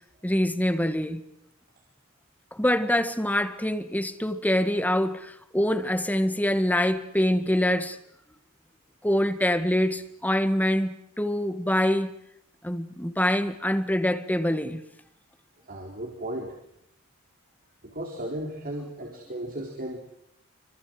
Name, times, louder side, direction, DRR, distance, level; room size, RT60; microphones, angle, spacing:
voice 1, 0.2-1.2 2.5-8.0 9.0-12.1 12.6-14.8, left 1 dB, 5° left, 1.8 m, -25 dB
voice 2, 15.7-16.5 17.8-20.0, right 1 dB, 40° right, 4.2 m, -35 dB
27.0 x 25.5 x 7.8 m
head